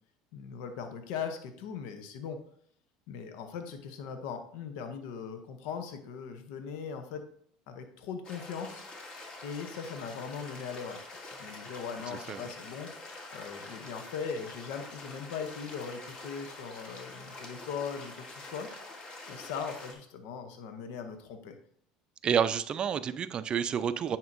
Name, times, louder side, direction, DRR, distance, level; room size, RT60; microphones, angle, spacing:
voice 1, 0.3-2.4 3.1-7.2 7.7-8.8 9.4-18.7 19.3-21.6, left 6 dB, 70° left, 7 dB, 0.8 m, -39 dB
sound 1, 8.2-19.9, left 2 dB, 40° left, 1.4 m, -46 dB
voice 2, 22.2-24.2, right 8 dB, 40° right, 13 dB, 0.4 m, -29 dB
9.3 x 4.4 x 2.6 m, 0.62 s
supercardioid pair, 90°, 2 cm